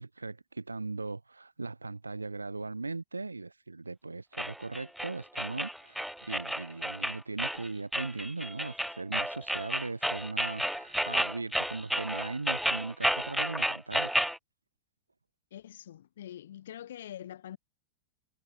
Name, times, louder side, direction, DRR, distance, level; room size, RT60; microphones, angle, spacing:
voice 1, 0.0-14.1, right 3 dB, 80° right, 1.5 m, -39 dB
sound 1, 4.4-14.4, equal, ahead, 0.6 m, -32 dB
voice 2, 15.5-17.6, left 11 dB, 60° left, 1.9 m, -44 dB
figure-of-eight pair, 90°, 0 cm